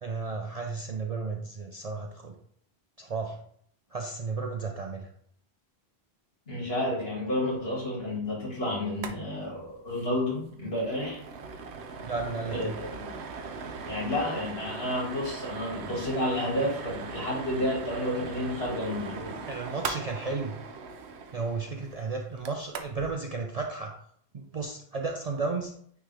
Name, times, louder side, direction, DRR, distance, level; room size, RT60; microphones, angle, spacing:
voice 1, 0.0-2.3 3.0-3.4 3.9-5.1 12.0-12.7 19.5-20.6 21.3-23.9 24.3-25.7, right 4 dB, 45° right, 2 dB, 0.6 m, -33 dB
voice 2, 6.5-11.2 12.5-13.1 13.8-19.3, left 1 dB, 70° left, -4 dB, 2.4 m, -31 dB
sound 1, 8.9-9.2 9.4-9.5 9.9-10.1 10.4-23.1, right 5 dB, 85° right, 1.0 m, -40 dB
9.3 x 3.3 x 3.4 m, 0.63 s
omnidirectional pair, 1.1 m